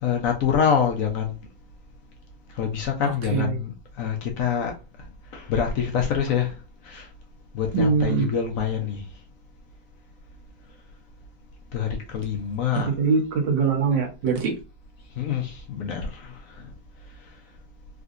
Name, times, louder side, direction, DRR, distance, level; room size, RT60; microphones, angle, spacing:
voice 1, 0.0-1.3 2.5-5.1 5.3-7.1 7.5-9.0 11.7-12.9 15.2-16.7 17.2-17.3, left 7 dB, 70° left, 0.8 m, -26 dB
voice 2, 3.0-3.6 7.7-8.3 12.9-14.5, right 5 dB, 85° right, 1.5 m, -23 dB
3.7 x 2.5 x 2.4 m
omnidirectional pair, 1.9 m